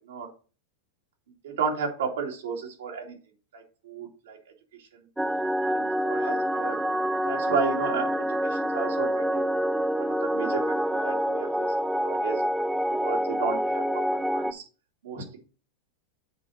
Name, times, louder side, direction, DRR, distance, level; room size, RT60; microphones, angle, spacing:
voice 1, 1.4-3.2 3.5-4.4 5.7-6.8 7.2-9.4 10.0-10.6 10.9-11.7 12.0-12.4 13.0-14.6 15.0-15.4, right 5 dB, 85° right, 0 dB, 2.8 m, -33 dB
sound 1, 5.2-14.5, equal, 5° right, 0.4 m, -27 dB
8.5 x 3.1 x 6.5 m, 0.36 s
supercardioid pair, 145°, 0 cm